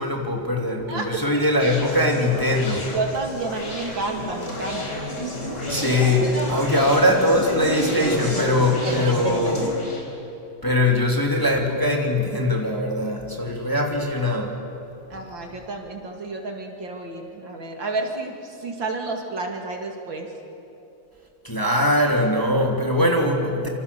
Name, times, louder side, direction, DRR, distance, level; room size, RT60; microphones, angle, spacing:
voice 1, 0.0-2.9 5.7-9.7 10.6-14.6 21.4-23.7, left 1 dB, 10° left, 1 dB, 2.7 m, -21 dB
voice 2, 0.9-1.6 2.9-5.0 8.8-9.3 13.4-13.8 15.1-20.3, right 3 dB, 65° right, 2 dB, 3.3 m, -31 dB
Conversation, 1.6-10.0, left 1 dB, 50° left, 5.2 m, -29 dB
27.0 x 26.5 x 7.0 m, 3.0 s
omnidirectional pair, 2.3 m